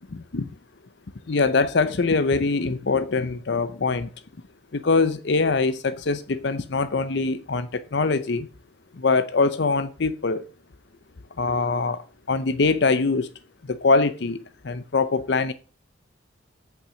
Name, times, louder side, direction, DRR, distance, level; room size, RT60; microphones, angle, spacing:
voice 1, 0.1-0.5 1.3-4.1 4.7-8.5 9.0-10.4 11.4-12.0 12.3-13.3 13.7-14.4 14.6-15.5, left 4 dB, 55° left, 0.6 m, -23 dB
8.5 x 7.1 x 6.2 m
head